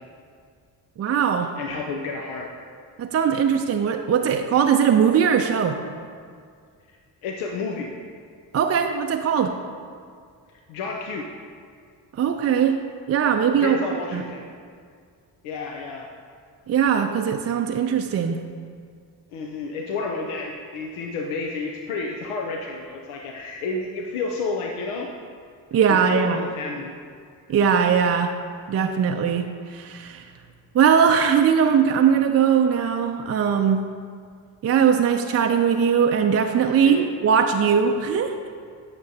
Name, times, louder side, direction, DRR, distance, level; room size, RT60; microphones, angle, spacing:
voice 1, 1.0-1.5 3.0-5.8 8.5-9.5 12.1-12.8 13.1-13.8 14.1-14.2 16.7-18.4 25.7-26.4 27.5-28.3 28.7-30.2 30.7-33.8 34.6-38.4, right 7 dB, 35° right, 4 dB, 0.4 m, -20 dB
voice 2, 1.6-2.5 7.2-7.9 10.7-11.3 13.5-14.4 15.4-16.1 19.3-25.1 25.9-27.0 36.8-37.2, left 3 dB, 85° left, 1 dB, 0.6 m, -30 dB
8.7 x 6.0 x 2.7 m, 2.1 s
supercardioid pair, 50°, 48 cm